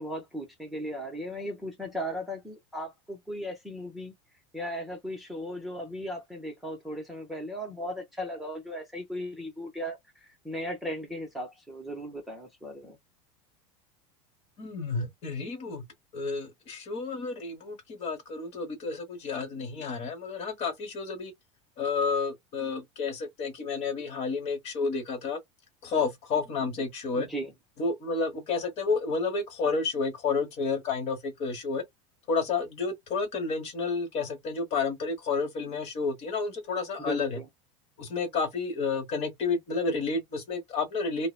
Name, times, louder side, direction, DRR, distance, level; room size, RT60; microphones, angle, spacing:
voice 1, 0.0-4.1 4.5-13.0 27.1-27.5 37.0-37.5, equal, ahead, 0.7 m, -37 dB
voice 2, 14.6-15.8 16.1-21.3 21.8-25.4 25.8-27.3 27.8-31.8 32.3-37.4 38.0-41.3, left 4 dB, 40° left, 1.3 m, -30 dB
2.8 x 2.1 x 2.4 m
supercardioid pair, 145°, 16 cm